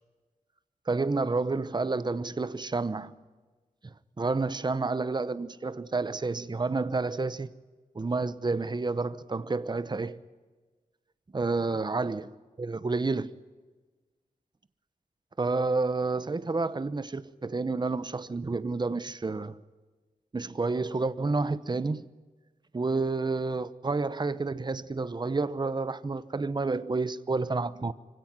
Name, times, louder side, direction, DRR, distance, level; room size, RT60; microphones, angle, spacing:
voice 1, 0.9-3.2 3.8-7.5 7.9-10.2 11.3-13.3 15.4-19.6 20.3-22.1 22.7-27.9, right 3 dB, 30° right, 0.9 m, -30 dB
24.5 x 17.0 x 9.4 m
wide cardioid pair, 90°, 14 cm